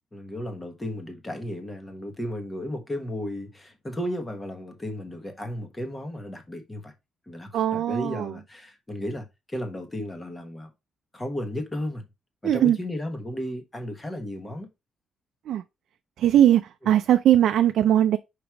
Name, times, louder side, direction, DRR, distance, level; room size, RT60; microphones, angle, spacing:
voice 1, 0.1-6.9 7.3-10.7 11.1-12.1 12.4-14.7 16.8-16.9, left 1 dB, 15° left, 1.3 m, -34 dB
voice 2, 7.5-8.3 12.4-12.8 15.5-15.6 16.2-16.6 16.9-18.2, right 11 dB, 70° right, 0.5 m, -19 dB
5.2 x 4.9 x 4.6 m
cardioid pair, 155°, 0 cm